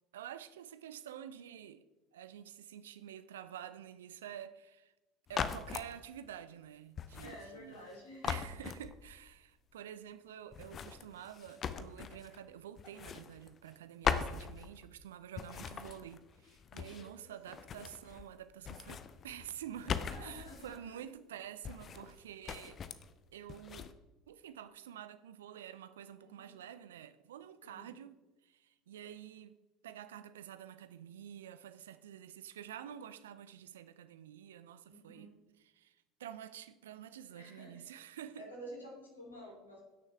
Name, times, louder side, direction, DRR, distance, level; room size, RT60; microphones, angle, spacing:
voice 1, 0.1-1.8 2.1-4.9 5.3-7.8 8.2-22.8 23.3-23.9 24.3-29.5 29.8-38.4, right 10 dB, 70° right, 0.5 m, -49 dB
sound 1, 5.3-5.9 7.0-7.9 8.2-9.3 10.5-12.4 12.8-13.8 14.0-15.0 15.4-17.2 17.5-18.3 18.6-20.8 21.6-22.2 22.5-23.1 23.5-23.9, left 7 dB, 35° left, 0.6 m, -40 dB
voice 2, 7.2-8.5 16.7-17.6 19.9-21.0 26.2-26.6 27.6-27.9 34.9-35.3 37.3-37.9 38.4-39.8, equal, 80° left, 3.1 m, -51 dB
16.5 x 6.5 x 3.5 m
figure-of-eight pair, 65°, 0 cm